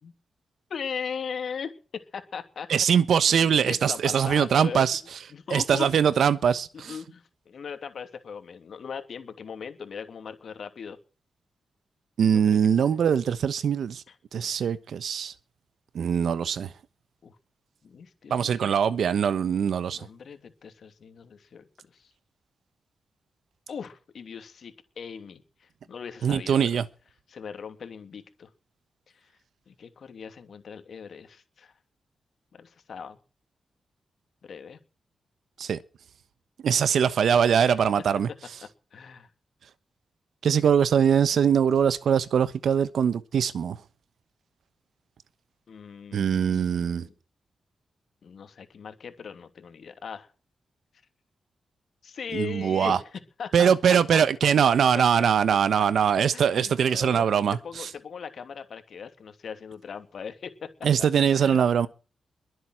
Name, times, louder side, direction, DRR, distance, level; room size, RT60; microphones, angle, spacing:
voice 1, 0.7-1.7 2.1-2.7 3.3-4.9 5.3-5.9 6.7-11.0 12.3-12.6 14.1-14.2 17.2-17.4 17.8-18.7 19.9-22.1 23.7-26.8 27.3-28.5 29.1-29.3 29.7-31.7 32.5-33.2 34.4-34.8 37.6-37.8 38.9-39.3 45.7-47.1 48.2-50.3 52.0-54.2 54.9-55.0 55.8-55.9 56.3-57.3 57.6-60.7 61.0-61.1 61.3-61.7, left 6 dB, 60° left, 2.6 m, -39 dB
voice 2, 2.7-5.0 5.5-6.9 12.2-14.0 14.3-15.3 15.9-16.7 18.3-20.0 26.2-26.8 35.6-35.8 36.6-38.3 40.4-43.8 46.1-47.1 52.3-53.0 53.5-57.9 60.8-61.9, right 7 dB, 75° right, 1.1 m, -22 dB
22.5 x 7.9 x 6.4 m
wide cardioid pair, 145°, 0 cm